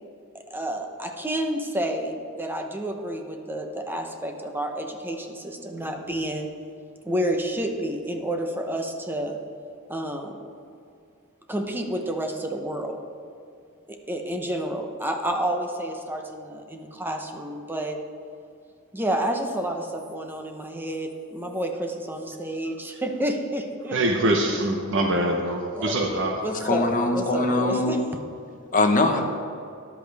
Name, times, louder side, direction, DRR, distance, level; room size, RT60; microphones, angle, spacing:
voice 1, 0.3-6.5 7.0-9.4 9.9-10.4 11.5-13.0 13.9-18.0 18.9-24.3 25.7-28.0, right 1 dB, 10° right, 4 dB, 0.9 m, -30 dB
voice 2, 23.9-26.4, right 1 dB, 55° right, 2 dB, 1.0 m, -24 dB
voice 3, 26.5-28.0 28.7-29.2, left 2 dB, 35° left, 3 dB, 1.2 m, -22 dB
13.0 x 11.0 x 3.5 m, 2.5 s
head